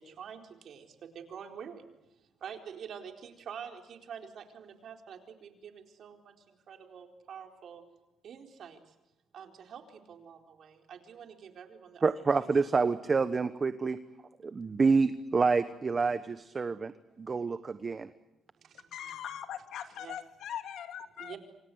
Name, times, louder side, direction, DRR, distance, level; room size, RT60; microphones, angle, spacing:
voice 1, 0.0-1.9 2.2-7.8 8.2-8.9 9.3-12.0 18.6-19.2 20.0-20.2 21.2-21.4, right 7 dB, 65° right, 4 dB, 4.3 m, -47 dB
voice 2, 12.0-14.0 14.4-16.9 17.2-18.1, right 4 dB, 35° right, 12 dB, 1.1 m, -28 dB
voice 3, 18.9-21.4, left 9 dB, 75° left, 8 dB, 2.4 m, -41 dB
27.0 x 26.5 x 8.0 m, 0.95 s
cardioid pair, 90°, 0 cm